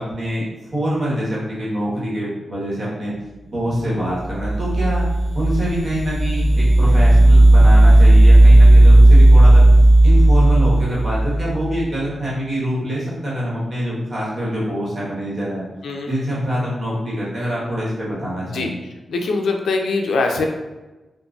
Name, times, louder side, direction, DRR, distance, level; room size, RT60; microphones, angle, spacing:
voice 1, 0.0-3.1 3.5-5.1 5.3-9.7 10.0-15.6 16.1-18.7, equal, 35° right, -7 dB, 1.0 m, -25 dB
sound 1, 4.2-11.7, right 1 dB, ahead, 0.5 m, -11 dB
voice 2, 15.8-16.2 18.4-18.7 19.1-20.5, left 3 dB, 85° left, 3 dB, 0.3 m, -22 dB
3.8 x 2.1 x 2.2 m, 1.1 s
wide cardioid pair, 155°, 0 cm